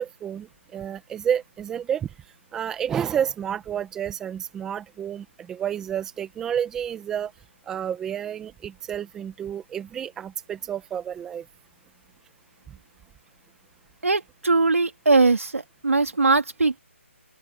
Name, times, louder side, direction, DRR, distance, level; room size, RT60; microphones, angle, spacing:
voice 1, 0.0-2.1 2.5-7.3 7.7-11.4, right 9 dB, 5° right, 1.5 m, -30 dB
voice 2, 14.0-16.8, right 3 dB, 90° right, 3.3 m, -21 dB
open air
hypercardioid pair, 170°, 7 cm